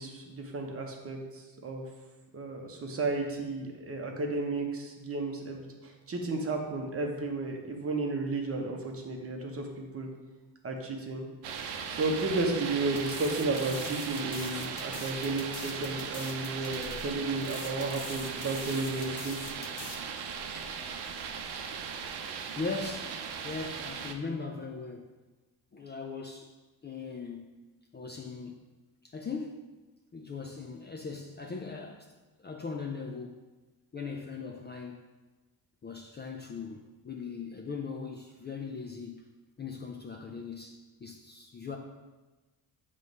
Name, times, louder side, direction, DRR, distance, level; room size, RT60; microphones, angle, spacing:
voice 1, 0.0-1.9 2.3-10.1 10.6-11.3 11.9-19.4, right 3 dB, 35° right, 2 dB, 1.0 m, -33 dB
sound 1, 11.4-24.1, right 6 dB, 70° right, 0.7 m, -38 dB
sound 2, 12.9-20.0, left 6 dB, 75° left, 0.9 m, -45 dB
voice 2, 22.6-23.2 23.4-25.1 25.7-26.5 26.8-27.5 27.9-28.7 29.0-29.7 30.1-32.1 32.4-33.5 33.9-35.1 35.8-39.3 39.6-41.8, left 4 dB, 25° left, 2 dB, 0.4 m, -39 dB
7.6 x 3.2 x 5.3 m, 1.2 s
cardioid pair, 145°, 41 cm